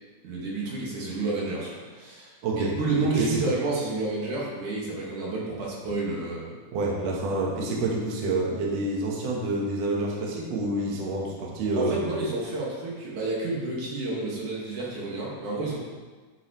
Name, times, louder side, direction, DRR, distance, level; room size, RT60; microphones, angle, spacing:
voice 1, 0.2-6.6 11.7-15.8, right 3 dB, 80° right, -5 dB, 3.2 m, -30 dB
voice 2, 6.7-12.2, right 2 dB, 65° right, -2 dB, 2.1 m, -28 dB
9.5 x 7.0 x 3.1 m, 1.4 s
omnidirectional pair, 3.5 m